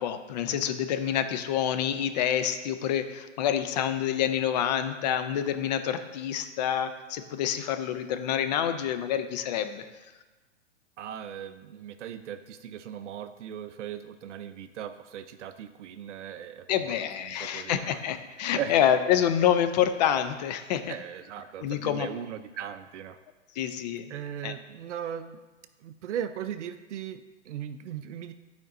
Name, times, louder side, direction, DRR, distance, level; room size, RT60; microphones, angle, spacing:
voice 1, 0.0-9.8 16.7-20.9 21.6-22.1 23.6-24.0 24.4-24.5, left 9 dB, 35° left, 9 dB, 0.4 m, -27 dB
voice 2, 11.0-18.0 18.5-18.8 20.9-23.2 24.1-25.4 25.8-28.3, right 9 dB, 70° right, 10 dB, 0.6 m, -38 dB
10.5 x 5.1 x 2.5 m, 1.2 s
hypercardioid pair, 125°, 38 cm